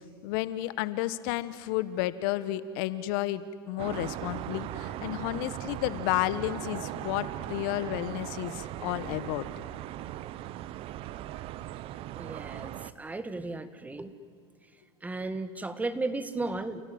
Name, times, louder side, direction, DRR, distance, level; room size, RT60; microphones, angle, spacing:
voice 1, 0.2-9.5, left 15 dB, 60° left, 14 dB, 1.2 m, -32 dB
sound 1, 3.8-12.9, right 13 dB, 45° right, 0.9 m, -38 dB
voice 2, 12.1-14.1 15.0-16.8, right 2 dB, 10° right, 12 dB, 1.7 m, -35 dB
29.5 x 17.5 x 9.4 m, 2.2 s
hypercardioid pair, 100°, 13 cm